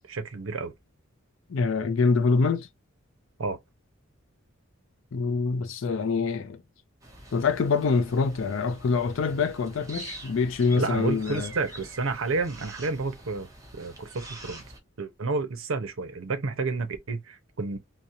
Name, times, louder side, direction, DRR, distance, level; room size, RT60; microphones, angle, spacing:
voice 1, 0.1-0.7 3.4-3.6 10.7-13.5 13.7-14.6 15.0-17.8, right 3 dB, 75° right, 0.6 m, -30 dB
voice 2, 1.5-2.7 5.1-6.6 7.3-11.5, left 4 dB, 65° left, 0.4 m, -25 dB
sound 1, 7.0-14.8, right 2 dB, 15° right, 0.7 m, -46 dB
2.8 x 2.0 x 2.4 m
head